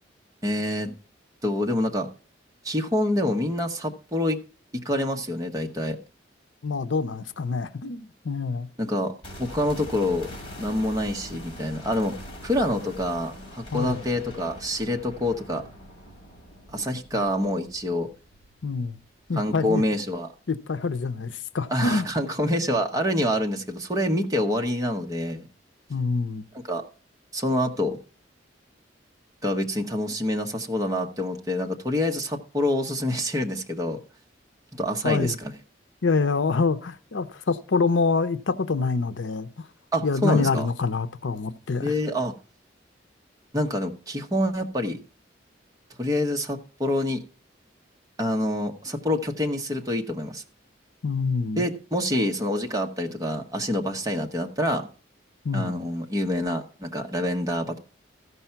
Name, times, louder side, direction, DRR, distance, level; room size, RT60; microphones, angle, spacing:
voice 1, 0.4-0.9 1.4-2.1 2.6-4.4 4.8-6.0 8.8-9.1 9.4-10.3 10.6-12.2 12.4-15.6 16.7-18.1 19.4-20.3 21.7-25.4 26.7-26.8 27.3-28.0 29.4-34.0 34.8-35.5 39.9-40.7 41.8-42.3 43.5-45.0 46.0-47.2 48.2-50.4 51.6-54.9 55.5-57.8, left 1 dB, 20° right, 1.1 m, -26 dB
voice 2, 6.6-8.7 13.7-14.0 18.6-19.0 19.3-19.8 20.5-22.1 25.9-26.4 35.0-35.4 36.0-39.7 40.0-41.9 51.0-51.7 55.4-55.8, left 4 dB, 80° left, 0.7 m, -26 dB
sound 1, 9.2-19.2 19.5-19.6, equal, 30° left, 3.2 m, -43 dB
14.5 x 5.5 x 5.7 m
head